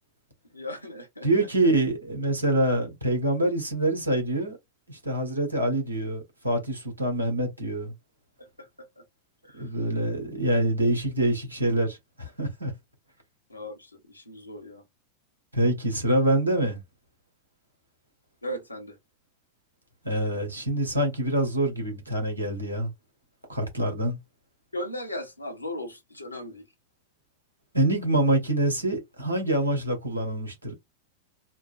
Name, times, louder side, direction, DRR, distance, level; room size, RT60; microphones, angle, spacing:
voice 1, 0.5-1.7 8.4-9.0 9.4-9.8 13.5-14.8 18.4-19.0 24.7-26.7, equal, 85° left, 1.0 m, -38 dB
voice 2, 1.2-4.6 4.9-7.9 9.5-12.7 15.5-16.8 20.0-22.9 23.5-24.2 27.7-30.7, right 1 dB, 85° right, 1.4 m, -25 dB
4.3 x 2.1 x 2.5 m
figure-of-eight pair, 90°, 0 cm